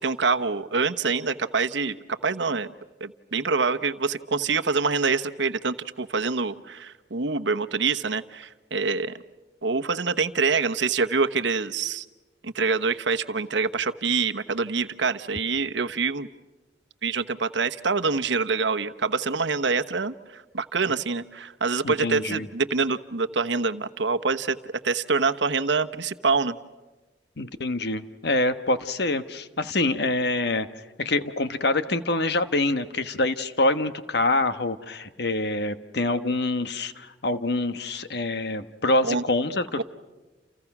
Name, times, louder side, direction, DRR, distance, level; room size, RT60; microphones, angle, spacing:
voice 1, 0.0-2.7 3.0-9.1 9.6-12.0 12.4-16.3 17.0-24.6 24.8-26.6 39.0-39.2 39.8-39.9, right 4 dB, 70° right, 8 dB, 1.1 m, -25 dB
voice 2, 21.8-22.5 27.4-30.7 31.0-39.8, left 2 dB, 60° left, 10 dB, 1.3 m, -25 dB
30.0 x 29.5 x 6.1 m, 1.1 s
head